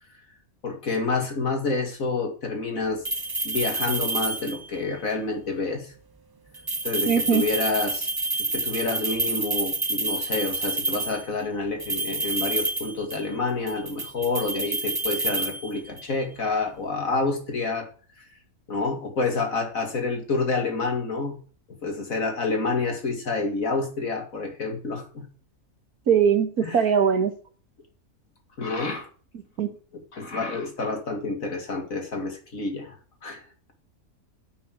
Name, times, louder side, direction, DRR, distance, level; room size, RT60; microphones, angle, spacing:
voice 1, 0.6-3.0 3.4-5.9 6.8-8.1 8.5-17.9 18.2-18.3 18.7-21.4 21.8-25.2 26.6-26.8 28.6-29.1 30.1-32.9 33.2-33.4, left 3 dB, 65° left, 3 dB, 2.8 m, -28 dB
sound 1, 3.0-4.8 6.5-11.3 11.8-13.4 13.7-16.1, right 3 dB, 25° right, 0.5 m, -29 dB
voice 2, 7.1-7.4 26.1-27.3 29.3-29.7, right 7 dB, 75° right, 9 dB, 1.9 m, -21 dB
9.2 x 6.4 x 8.3 m, 0.41 s
omnidirectional pair, 1.6 m